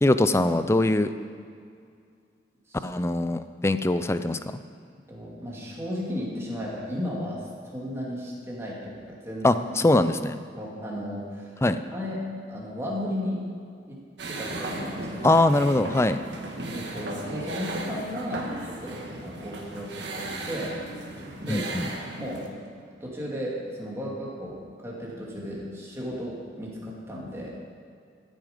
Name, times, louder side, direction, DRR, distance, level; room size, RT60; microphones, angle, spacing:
voice 1, 0.0-1.1 2.8-4.6 9.4-10.4 11.6-11.8 15.2-16.2 21.5-21.9, left 2 dB, 15° left, 11 dB, 0.4 m, -22 dB
voice 2, 5.1-9.6 10.5-11.5 11.9-13.4 13.9-14.0 14.3-15.3 16.6-20.8 21.4-21.7 22.2-22.4 22.8-27.5, equal, 15° right, -5 dB, 2.4 m, -34 dB
sound 1, 14.2-22.5, right 2 dB, 70° right, 1.6 m, -36 dB
14.0 x 9.2 x 5.2 m, 2.3 s
head